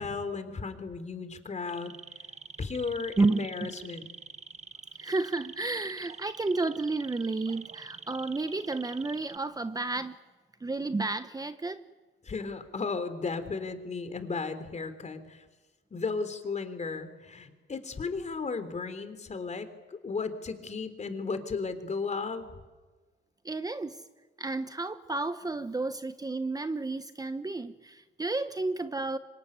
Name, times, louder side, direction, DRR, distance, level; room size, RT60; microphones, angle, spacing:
voice 1, 0.0-1.9 2.6-4.1 12.2-15.4 15.9-22.5, left 4 dB, 35° left, 10 dB, 3.6 m, -35 dB
sound 1, 1.5-9.4, right 5 dB, 35° right, 1.4 m, -46 dB
voice 2, 3.2-3.7 5.0-10.2 10.6-11.8 23.4-24.0 24.4-29.2, right 3 dB, 20° right, 10 dB, 1.1 m, -31 dB
25.5 x 23.0 x 9.8 m, 1.3 s
cardioid pair, 90°, 20 cm